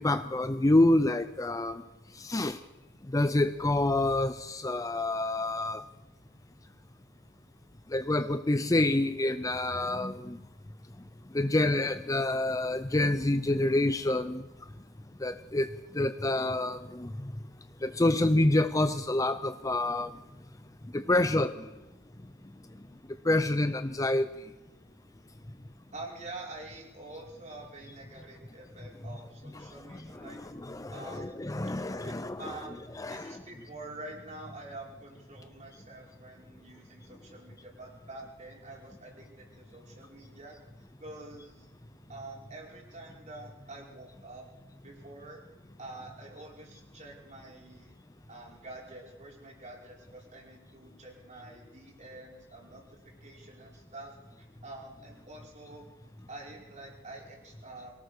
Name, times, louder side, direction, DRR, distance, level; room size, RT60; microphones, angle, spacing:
voice 1, 0.0-1.8 2.2-2.6 3.1-5.8 7.9-10.4 11.3-14.4 15.2-15.7 15.9-17.1 17.8-20.1 20.9-21.5 23.3-24.3 30.2-33.4, left 2 dB, 15° left, 0.6 m, -27 dB
voice 2, 25.9-30.4 30.9-31.4 32.0-40.6 41.0-41.7 42.1-44.4 44.8-45.5 45.8-47.9 48.3-52.8 53.2-55.8 56.3-57.9, right 2 dB, 35° right, 5.4 m, -47 dB
23.5 x 18.0 x 6.7 m
head